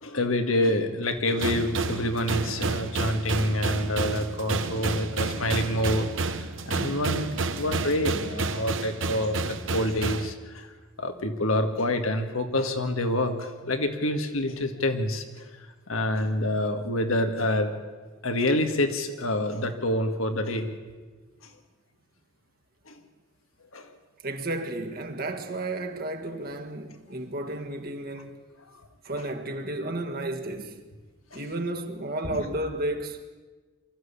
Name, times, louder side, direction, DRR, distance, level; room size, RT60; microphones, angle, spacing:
voice 1, 0.0-10.7 11.0-17.7 18.2-20.7 22.9-23.0 23.7-23.9 31.3-31.4 32.3-32.5, left 1 dB, 85° left, 2.1 m, -27 dB
sound 1, 1.4-10.3, right 3 dB, 65° right, 1.2 m, -30 dB
voice 2, 24.2-28.4 29.0-30.8 31.3-33.2, right 1 dB, 45° right, 1.8 m, -32 dB
24.0 x 14.0 x 8.6 m
head